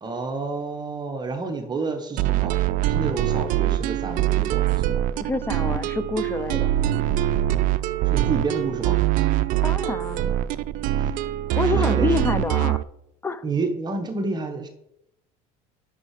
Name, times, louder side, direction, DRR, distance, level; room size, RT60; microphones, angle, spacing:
voice 1, 0.0-2.6 2.9-5.0 8.0-9.0 11.0-11.1 11.6-12.1 13.4-14.7, right 4 dB, 25° right, 5 dB, 0.9 m, -29 dB
sound 1, 2.2-12.8, right 13 dB, 55° right, 0.4 m, -23 dB
voice 2, 5.2-6.7 9.6-10.3 11.6-12.8 13.2-13.4, left 3 dB, 15° left, 16 dB, 0.4 m, -27 dB
6.0 x 5.7 x 4.7 m, 0.80 s
supercardioid pair, 110°, 16 cm